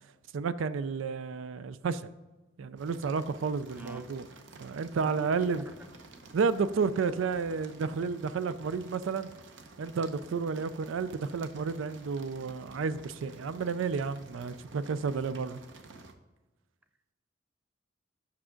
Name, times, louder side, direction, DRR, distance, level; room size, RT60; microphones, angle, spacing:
voice 1, 0.3-2.1 2.6-4.3 4.6-5.6 6.3-9.3 9.8-15.6, right 5 dB, 85° right, 14 dB, 0.4 m, -31 dB
sound 1, 2.8-16.1, right 3 dB, 70° right, 0.8 m, -52 dB
voice 2, 3.7-4.1 4.5-4.6 5.0-6.3, right 1 dB, 10° right, 8 dB, 0.5 m, -46 dB
7.3 x 6.1 x 3.7 m, 1.2 s
head